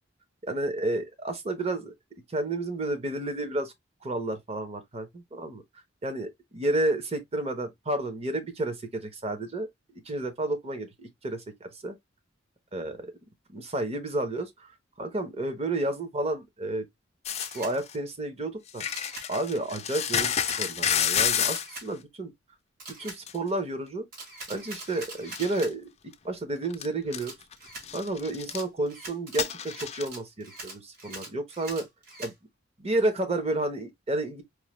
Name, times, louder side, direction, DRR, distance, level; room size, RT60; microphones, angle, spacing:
voice 1, 0.4-1.9 2.3-3.7 4.0-5.6 6.0-9.7 10.1-12.0 12.7-13.1 13.5-14.7 15.0-16.8 17.5-18.8 19.3-22.3 23.0-24.1 24.5-25.9 26.2-27.3 27.9-31.9 32.2-32.3 32.8-34.4, right 2 dB, 35° right, 0.9 m, -31 dB
sound 1, 17.3-17.9 18.7-21.7 23.3-23.4 24.9-25.0 25.3-25.7 26.1-26.2 26.7-26.9 27.1-27.5 27.8-28.6 29.4-30.1, left 9 dB, 35° left, 0.4 m, -29 dB
Camera, 17.3-17.7 18.9-19.3 20.2-20.6 21.5-21.9 22.8-23.2 24.1-25.7 27.2-27.9 28.5-32.3, right 2 dB, 50° right, 1.9 m, -43 dB
4.7 x 2.2 x 3.1 m
head